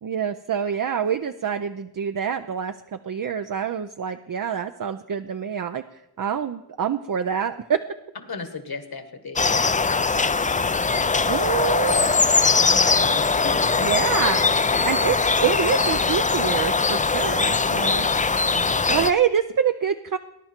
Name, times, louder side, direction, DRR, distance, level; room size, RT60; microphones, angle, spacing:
voice 1, 0.0-5.8 6.2-7.8 11.2-12.1 13.8-14.4 14.8-15.1 15.4-18.1 18.9-20.2, right 8 dB, 55° right, 9 dB, 0.5 m, -26 dB
voice 2, 8.2-11.4 12.6-13.2 13.4-13.9, left 4 dB, 65° left, 8 dB, 1.6 m, -37 dB
sound 1, 9.4-19.1, left 4 dB, 20° left, 0.4 m, -21 dB
19.5 x 10.0 x 4.4 m, 0.88 s
wide cardioid pair, 80°, 39 cm